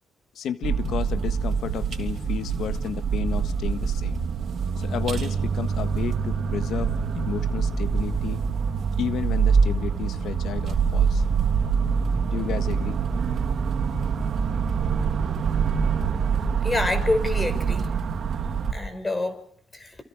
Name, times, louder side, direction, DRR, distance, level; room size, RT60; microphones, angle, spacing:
voice 1, 0.3-4.2 4.8-8.4 9.0-11.2 12.3-13.0, left 9 dB, 75° left, 11 dB, 1.5 m, -32 dB
sound 1, 0.6-18.7, right 6 dB, 60° right, 3.3 m, -25 dB
voice 2, 16.6-17.9 18.7-19.3 19.7-20.0, left 2 dB, 20° left, 10 dB, 5.2 m, -26 dB
28.5 x 27.5 x 4.9 m, 0.63 s
cardioid pair, 90°, 0 cm